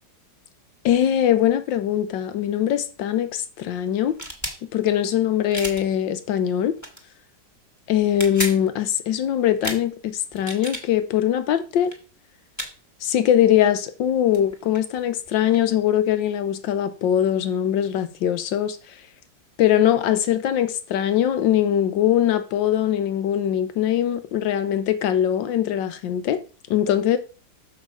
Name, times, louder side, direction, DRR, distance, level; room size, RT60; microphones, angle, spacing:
voice 1, 0.8-4.1 4.7-6.7 7.9-11.9 13.0-18.8 19.6-26.4 26.7-27.2, left 10 dB, 90° left, 1.5 m, -21 dB
sound 1, 4.1-4.6 5.5-5.8 6.8-7.0 8.0-8.6 9.6-9.8 10.3-10.8 11.8-12.0 12.6-12.7 14.1-14.2 14.3-15.6, right 1 dB, 10° left, 1.2 m, -31 dB
6.5 x 5.6 x 4.7 m
omnidirectional pair, 2.0 m